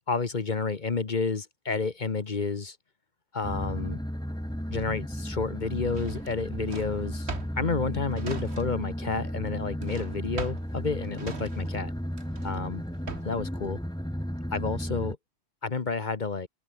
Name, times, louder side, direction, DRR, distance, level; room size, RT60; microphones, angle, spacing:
voice 1, 0.1-2.8 3.3-4.0 4.7-11.9 12.4-12.8 13.2-13.8 14.5-15.2 15.6-16.5, left 4 dB, 40° left, 1.3 m, -30 dB
sound 1, 3.4-15.1, equal, 5° left, 2.5 m, -34 dB
Drawer open or close, 5.9-9.0 9.2-13.5, right 4 dB, 60° right, 2.4 m, -41 dB
open air
omnidirectional pair, 1.3 m